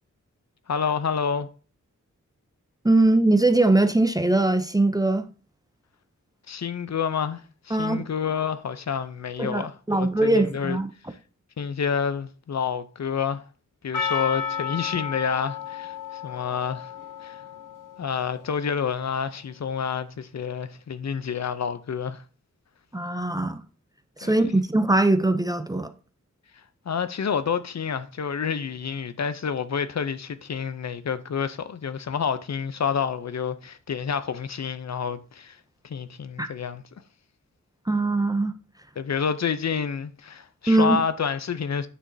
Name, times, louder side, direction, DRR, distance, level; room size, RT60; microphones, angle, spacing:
voice 1, 0.7-1.5 6.5-10.8 11.6-13.4 13.8-16.9 17.2-17.4 18.0-22.2 24.2-24.5 26.9-35.6 35.8-36.8 39.0-41.9, left 6 dB, 60° left, 0.6 m, -28 dB
voice 2, 2.8-5.2 7.7-8.0 9.4-10.9 22.9-23.6 24.2-25.9 36.4-36.5 37.9-38.5 40.7-41.0, right 2 dB, 10° right, 0.5 m, -21 dB
Percussion, 13.9-18.5, left 6 dB, 85° left, 0.8 m, -33 dB
9.2 x 6.1 x 2.7 m
wide cardioid pair, 110°, 31 cm